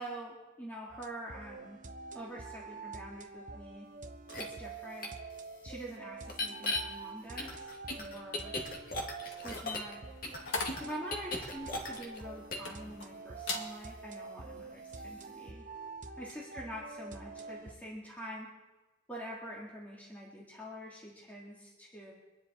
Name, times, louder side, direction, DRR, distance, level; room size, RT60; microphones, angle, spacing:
voice 1, 0.0-1.8 2.1-3.9 4.4-5.1 5.6-7.7 8.0-8.5 9.4-10.0 10.8-15.6 16.2-18.5 19.1-22.1, equal, 10° left, -5 dB, 2.3 m, -45 dB
sound 1, 0.9-17.7, right 4 dB, 40° right, 0.9 m, -47 dB
sound 2, 4.3-4.4 5.0-5.1 6.3-6.8 7.4-9.9 10.2-12.2 12.5-12.7, left 2 dB, 45° left, 2.0 m, -36 dB
sound 3, 9.2-13.1 13.4-13.7 14.2-14.4, left 3 dB, 70° left, 2.1 m, -40 dB
25.0 x 10.5 x 4.3 m, 1.2 s
head